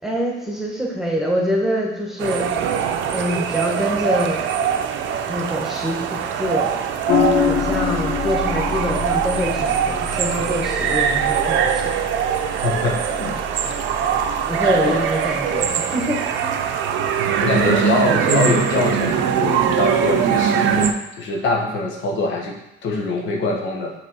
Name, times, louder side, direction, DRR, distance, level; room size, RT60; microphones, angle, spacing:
voice 1, 0.0-2.5 3.1-4.5 5.2-7.0 7.4-11.9 14.5-16.6, equal, ahead, -2 dB, 1.2 m, -25 dB
sound 1, 2.2-20.9, right 8 dB, 80° right, 0.6 m, -22 dB
sound 2, 7.1-15.6, left 6 dB, 45° left, 0.8 m, -27 dB
voice 2, 12.6-13.4 14.7-15.1 17.4-22.6 22.8-23.9, left 3 dB, 80° left, 0 dB, 1.2 m, -23 dB
6.2 x 3.6 x 4.5 m, 0.88 s
cardioid pair, 120°, 19 cm